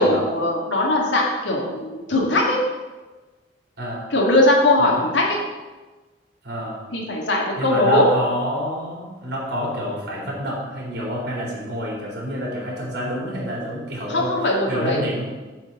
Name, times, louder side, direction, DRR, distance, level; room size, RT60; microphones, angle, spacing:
voice 1, 0.0-2.6 4.1-5.4 6.9-8.1 14.1-15.0, left 1 dB, 85° left, -2 dB, 1.8 m, -20 dB
voice 2, 3.8-4.1 5.0-5.1 6.4-6.8 7.6-14.3 14.7-15.3, equal, 65° right, -2 dB, 2.9 m, -28 dB
8.1 x 4.5 x 7.0 m, 1.2 s
head